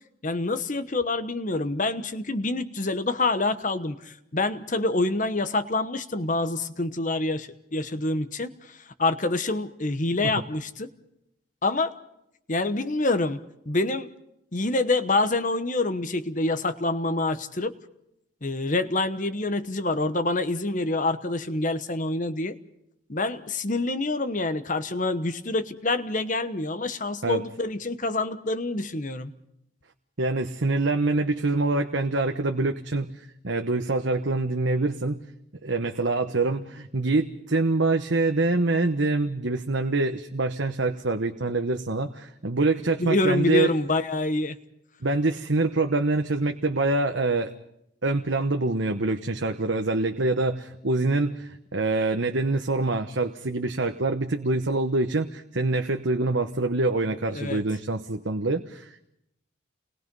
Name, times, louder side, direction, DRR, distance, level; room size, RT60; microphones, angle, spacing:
voice 1, 0.2-10.9 11.6-11.9 12.5-13.4 13.7-14.1 14.5-17.7 18.4-22.6 23.1-29.3 43.0-44.6 57.3-57.6, left 2 dB, 40° left, 10 dB, 1.1 m, -26 dB
voice 2, 30.2-35.2 35.6-43.7 45.0-47.5 48.0-59.1, right 2 dB, 65° right, 5 dB, 1.1 m, -25 dB
30.0 x 21.0 x 5.4 m, 0.78 s
head